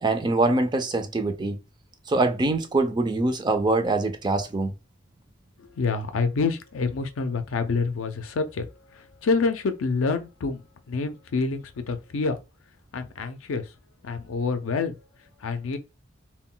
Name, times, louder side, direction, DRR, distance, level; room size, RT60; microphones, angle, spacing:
voice 1, 0.0-1.6 2.1-4.7, right 2 dB, 20° right, 0.3 m, -24 dB
voice 2, 5.8-8.6 9.2-10.6 10.9-12.4 12.9-13.6 14.0-14.9 15.4-15.8, left 4 dB, 80° left, 0.4 m, -27 dB
2.2 x 2.1 x 3.7 m
head